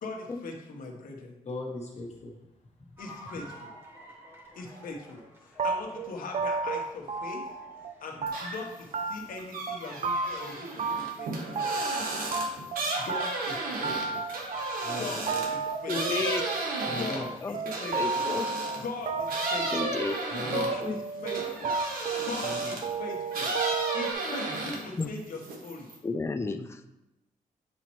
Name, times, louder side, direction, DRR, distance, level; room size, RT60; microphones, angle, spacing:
voice 1, 0.0-1.4 3.0-3.7 4.5-7.4 8.0-12.1 13.0-14.2 14.9-16.3 16.8-18.3 18.7-20.0 20.4-21.8 22.3-23.5 23.9-25.9, left 3 dB, 75° left, 1 dB, 1.1 m, -40 dB
voice 2, 1.4-2.4 14.8-15.0 15.3-15.4 16.8-17.3 20.3-20.6 22.4-22.6, left 2 dB, 50° left, -1 dB, 1.2 m, -38 dB
sound 1, 3.0-9.4, equal, 15° right, 1.5 m, -51 dB
sound 2, 5.6-7.9 8.2-8.7 8.9-9.4 9.7-10.5 10.8-12.8 13.1-24.1, right 4 dB, 50° right, 0.4 m, -32 dB
sound 3, 8.3-8.8 9.1-18.9 19.3-22.9 23.3-25.0 25.3-26.0, right 2 dB, 85° right, 1.1 m, -34 dB
voice 3, 15.9-16.4 17.4-18.5 19.7-20.2 20.5-21.0 24.9-25.1 26.0-26.9, left 3 dB, 20° left, 7 dB, 0.4 m, -32 dB
7.5 x 4.1 x 3.1 m, 0.94 s
cardioid pair, 95°, 14 cm